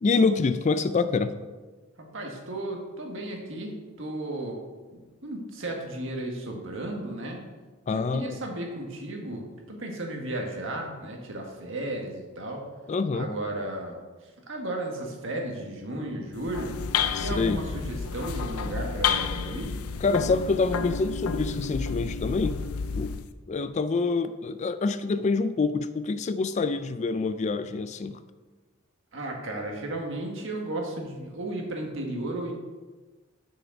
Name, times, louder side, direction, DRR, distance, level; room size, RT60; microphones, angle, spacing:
voice 1, 0.0-1.4 7.9-8.4 12.9-13.3 17.1-17.6 20.0-22.6 22.9-23.2 23.5-28.2, left 4 dB, 35° left, 12 dB, 0.3 m, -26 dB
voice 2, 2.0-4.6 4.9-7.4 7.9-12.7 13.1-14.0 14.2-16.8 17.2-19.7 29.1-32.5, right 1 dB, 60° right, 1 dB, 1.6 m, -34 dB
sound 1, 16.3-23.3, left 6 dB, 90° left, 0.5 m, -30 dB
6.6 x 6.3 x 5.9 m, 1.3 s
head